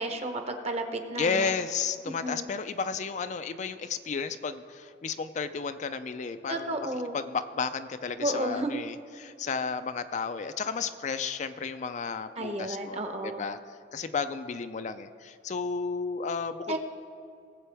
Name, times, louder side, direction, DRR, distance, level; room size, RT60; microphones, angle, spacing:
voice 1, 0.0-1.5 2.2-2.5 6.5-7.2 8.2-8.8 12.4-13.4 16.7-16.8, right 1 dB, 35° right, 6 dB, 1.0 m, -32 dB
voice 2, 1.2-16.8, left 5 dB, 45° left, 10 dB, 0.4 m, -33 dB
18.5 x 7.7 x 3.4 m, 2.4 s
head